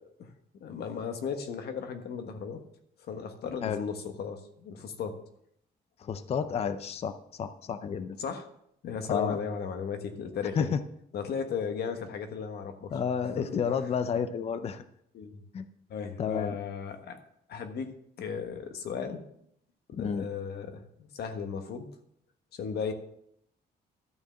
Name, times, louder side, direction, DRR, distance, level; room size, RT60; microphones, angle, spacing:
voice 1, 0.6-2.6 3.0-5.2 8.2-8.5 8.8-10.7 11.1-12.9 13.4-13.5 15.1-15.4 15.9-17.2 17.5-17.9 18.2-19.2 19.9-21.9 22.5-22.9, left 6 dB, 65° left, 7 dB, 1.3 m, -35 dB
voice 2, 6.0-8.2 9.1-9.4 10.6-10.8 12.9-14.8 15.5-15.7 16.2-16.6 20.0-20.3, left 7 dB, 35° left, 11 dB, 0.5 m, -31 dB
12.5 x 4.7 x 7.4 m, 0.73 s
cardioid pair, 165°, 18 cm